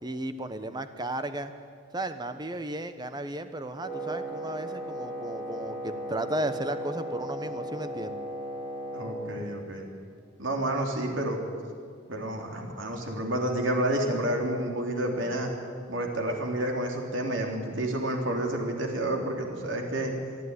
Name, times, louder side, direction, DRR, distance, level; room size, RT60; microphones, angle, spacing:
voice 1, 0.0-1.5 1.9-8.2, right 1 dB, 20° right, 10 dB, 1.1 m, -34 dB
Wind instrument woodwind instrument, 3.8-9.2, right 1 dB, 5° left, 6.8 m, -36 dB
voice 2, 8.9-9.9 10.4-11.4 12.1-15.5 15.9-20.1, right 1 dB, 75° right, 2 dB, 3.3 m, -29 dB
23.5 x 12.5 x 9.8 m, 2.2 s
head